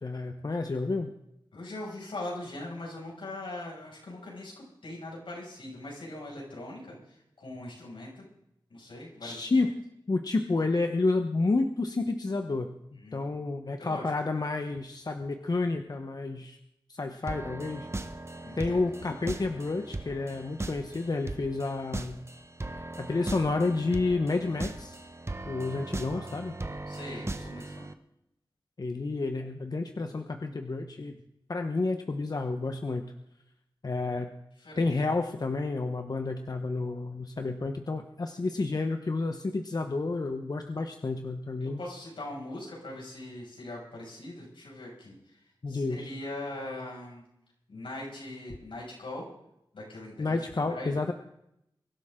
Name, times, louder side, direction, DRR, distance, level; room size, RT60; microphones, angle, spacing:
voice 1, 0.0-1.1 9.2-9.7 10.1-16.6 16.9-17.9 18.6-22.2 23.0-25.0 25.4-26.5 28.8-31.1 31.5-33.0 33.8-34.3 34.8-41.8 45.6-46.1 50.2-51.1, left 3 dB, 50° left, 6 dB, 1.1 m, -30 dB
voice 2, 1.5-8.2 8.7-9.4 13.0-13.4 13.8-14.1 18.4-18.8 26.0-26.3 26.9-27.9 34.6-34.9 41.6-47.2 47.7-49.3 49.7-51.0, left 1 dB, 85° left, -3 dB, 6.4 m, -41 dB
sound 1, 17.3-27.9, right 2 dB, 30° right, 1.1 m, -39 dB
23.5 x 12.0 x 3.8 m, 0.81 s
wide cardioid pair, 60°, 9 cm